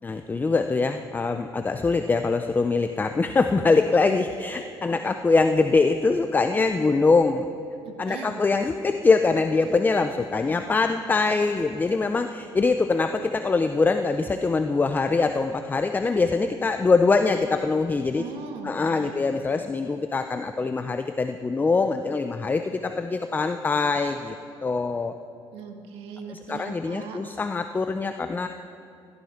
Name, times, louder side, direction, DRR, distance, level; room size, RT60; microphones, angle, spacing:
voice 1, 0.0-7.4 8.0-18.2 18.6-24.4 24.6-25.1 26.3-28.5, left 4 dB, 20° left, 8 dB, 0.5 m, -23 dB
voice 2, 7.8-8.4 18.2-19.3 25.5-27.2, right 5 dB, 85° right, 4 dB, 1.7 m, -39 dB
16.0 x 12.5 x 5.8 m, 2.5 s
cardioid pair, 115°, 10 cm